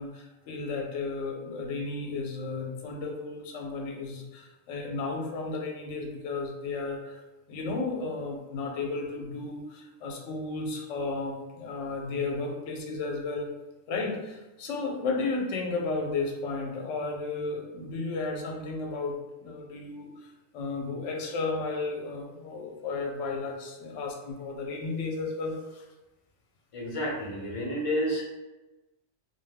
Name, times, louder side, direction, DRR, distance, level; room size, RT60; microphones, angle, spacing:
voice 1, 0.0-7.2 7.5-13.5 13.9-25.9, left 3 dB, 85° left, 1 dB, 0.9 m, -33 dB
voice 2, 26.7-28.2, equal, 35° left, -3 dB, 0.6 m, -30 dB
2.6 x 2.2 x 3.3 m, 1.1 s
omnidirectional pair, 1.2 m